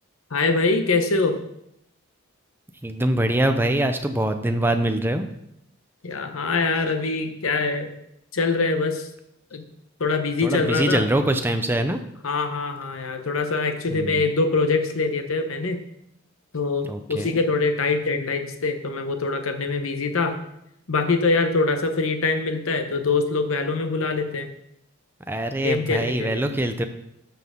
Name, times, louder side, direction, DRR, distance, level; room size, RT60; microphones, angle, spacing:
voice 1, 0.3-1.4 6.0-7.9 8.3-9.1 9.5-9.6 10.0-11.0 12.2-15.8 16.5-20.4 20.9-24.5 25.6-26.5, left 3 dB, 70° left, 7 dB, 0.9 m, -24 dB
voice 2, 2.8-5.3 10.4-12.0 13.9-14.3 16.9-17.4 25.3-26.8, right 1 dB, 10° right, 7 dB, 0.6 m, -24 dB
12.5 x 5.9 x 3.7 m, 0.79 s
head